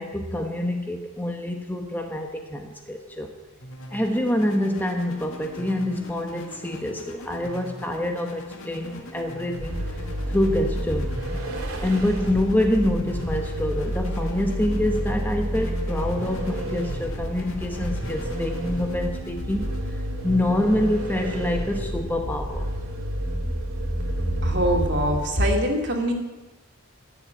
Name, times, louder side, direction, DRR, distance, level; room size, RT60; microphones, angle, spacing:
voice 1, 0.0-3.3 3.9-9.8 10.3-11.1 11.8-22.7, left 1 dB, 10° left, 3 dB, 1.0 m, -26 dB
sound 1, 3.6-21.3, equal, 75° left, 2.1 m, -42 dB
Vehicle, 9.6-25.5, equal, 85° right, 2.4 m, -30 dB
voice 2, 24.4-26.1, equal, 55° right, 1 dB, 2.5 m, -23 dB
15.0 x 7.3 x 9.2 m, 1.1 s
head